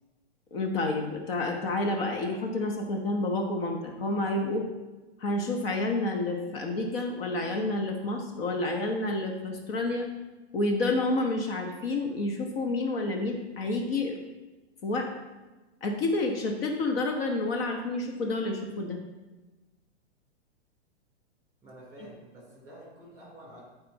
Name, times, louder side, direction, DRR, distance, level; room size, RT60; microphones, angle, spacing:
voice 1, 0.5-4.7 5.2-10.1 10.5-14.2 14.8-15.1 15.8-19.0, left 2 dB, 60° left, 2 dB, 1.2 m, -29 dB
voice 2, 21.6-23.6, right 1 dB, 10° right, -4 dB, 3.1 m, -49 dB
12.5 x 4.3 x 4.1 m, 1.2 s
hypercardioid pair, 150°, 34 cm